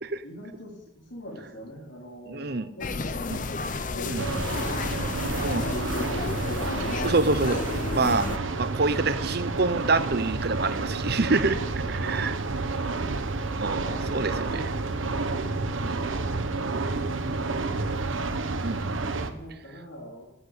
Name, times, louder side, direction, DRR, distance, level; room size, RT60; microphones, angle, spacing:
voice 1, 0.2-3.3 3.6-4.7 5.1-6.9 11.6-12.6 13.2-15.5 16.5-18.8 19.0-20.2, equal, 75° left, -2 dB, 3.8 m, -43 dB
voice 2, 2.3-2.7 3.3-3.4 4.1-4.2 5.4-5.6 7.0-7.6 7.9-8.3 8.6-11.6 12.0-12.3 13.6-13.8 14.1-14.6 15.8-16.0 16.6-16.7 18.6-18.9, right 3 dB, 55° right, 13 dB, 0.8 m, -26 dB
sound 1, 2.8-8.4, left 3 dB, 40° left, 0.7 m, -31 dB
sound 2, 4.2-19.3, right 3 dB, 85° right, 1.1 m, -30 dB
18.0 x 7.6 x 8.5 m, 0.94 s
head